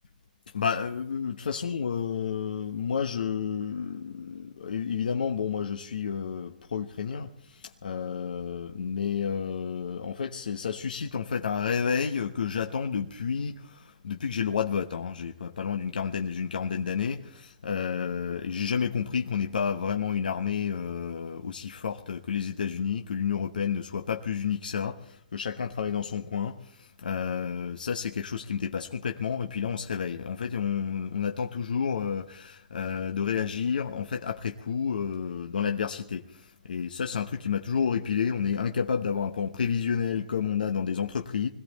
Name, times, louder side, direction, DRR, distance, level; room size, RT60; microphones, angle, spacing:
voice 1, 0.5-41.5, left 7 dB, 80° left, 1.1 m, -30 dB
21.5 x 16.0 x 4.1 m
hypercardioid pair, 140°, 5 cm